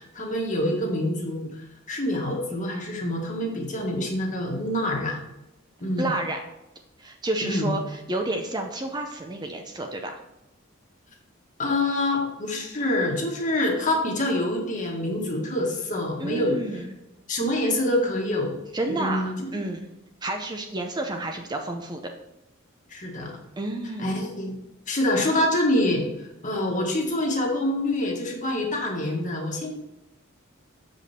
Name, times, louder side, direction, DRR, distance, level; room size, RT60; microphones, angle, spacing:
voice 1, 0.0-1.5 1.9-5.2 5.8-6.1 7.4-7.7 11.6-16.6 17.3-18.5 18.9-19.5 22.9-23.3 24.0-24.6 24.9-29.7, left 1 dB, 40° left, 0 dB, 1.6 m, -26 dB
voice 2, 6.0-6.4 7.0-10.2 16.2-16.9 18.7-19.9 20.2-22.1 23.6-24.1, right 2 dB, 20° right, 3 dB, 0.6 m, -30 dB
7.0 x 5.3 x 4.2 m, 0.93 s
head